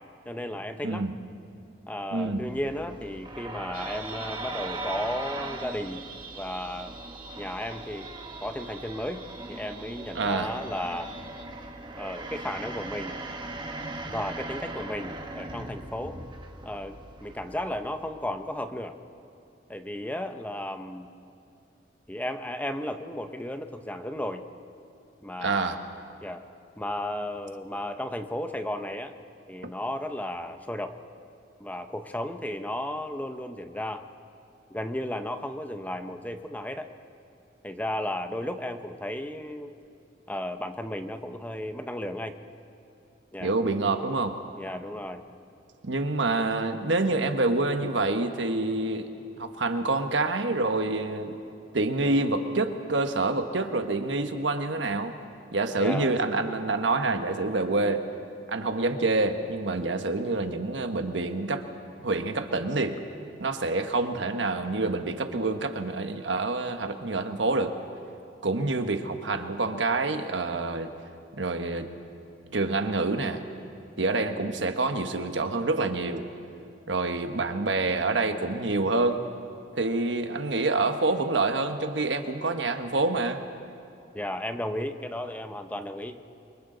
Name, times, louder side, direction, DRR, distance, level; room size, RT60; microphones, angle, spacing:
voice 1, 0.3-1.1 1.9-6.0 6.4-6.9 7.4-8.1 8.4-11.1 12.0-13.2 14.0-16.2 16.6-16.9 17.2-19.0 19.7-21.1 22.1-24.4 25.2-25.8 26.2-26.4 26.8-29.1 29.5-31.0 31.6-34.1 34.7-36.9 37.6-39.7 40.3-42.3 43.3-43.5 44.6-45.2 55.8-56.1 74.3-74.6 84.1-86.2, left 1 dB, 10° left, 7 dB, 0.8 m, -34 dB
voice 2, 0.8-1.1 2.1-2.4 10.1-10.5 25.4-25.8 43.4-44.4 45.8-49.1 49.4-51.3 51.7-55.1 55.5-58.0 58.5-61.6 62.0-63.0 63.4-67.7 68.4-70.9 71.3-71.9 72.5-73.5 74.0-76.2 76.9-79.2 79.8-83.4, right 3 dB, 90° right, 7 dB, 1.3 m, -27 dB
sound 1, 2.2-18.6, right 2 dB, 25° right, 1.5 m, -40 dB
sound 2, 3.7-11.4, right 5 dB, 50° right, 1.8 m, -45 dB
28.5 x 24.0 x 3.9 m, 2.5 s
head